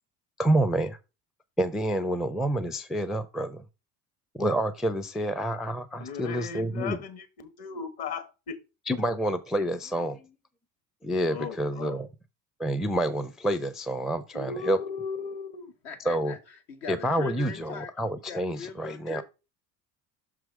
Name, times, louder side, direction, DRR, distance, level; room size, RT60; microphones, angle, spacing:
voice 1, 0.4-1.0 1.6-3.6 4.3-7.0 8.9-10.3 11.0-12.1 12.6-14.8 16.1-16.3 16.9-19.2, right 1 dB, ahead, 0.4 m, -28 dB
voice 2, 6.0-8.6 11.3-12.1 14.3-15.7 17.5-17.6, left 5 dB, 50° left, 1.6 m, -37 dB
voice 3, 15.8-17.9 18.3-19.2, left 6 dB, 70° left, 1.6 m, -40 dB
6.0 x 4.8 x 4.8 m
hypercardioid pair, 65°, 49 cm